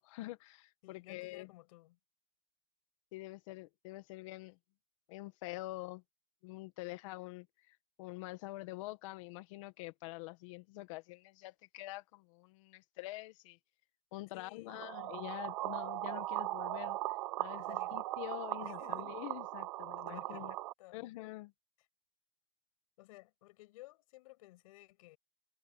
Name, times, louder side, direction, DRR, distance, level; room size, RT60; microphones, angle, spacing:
voice 1, 0.0-1.5 3.1-4.6 5.1-6.0 6.4-13.6 14.1-17.0 17.4-20.6 20.9-21.5, left 19 dB, 65° left, 1.8 m, -46 dB
voice 2, 0.8-2.0 14.3-15.0 17.6-17.9 18.6-19.1 20.0-21.1 23.0-25.2, left 19 dB, 80° left, 7.7 m, -56 dB
sound 1, 14.7-20.7, right 19 dB, 85° right, 0.8 m, -39 dB
supercardioid pair, 175°, 18 cm